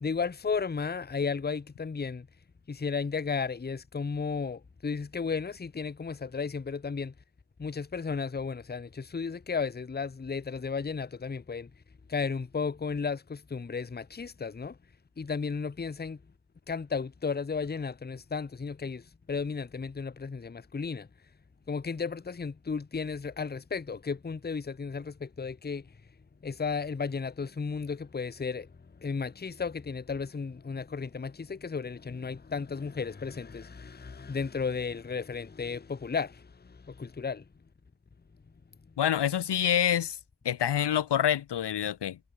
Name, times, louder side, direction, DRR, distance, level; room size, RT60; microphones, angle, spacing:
voice 1, 0.0-2.3 2.7-7.1 7.6-11.7 12.1-14.8 15.2-16.2 16.7-21.1 21.7-25.9 26.4-28.7 29.0-37.4, left 5 dB, 25° left, 0.7 m, -34 dB
voice 2, 39.0-40.2 40.4-42.2, left 10 dB, 75° left, 0.7 m, -26 dB
wide cardioid pair, 115°, 41 cm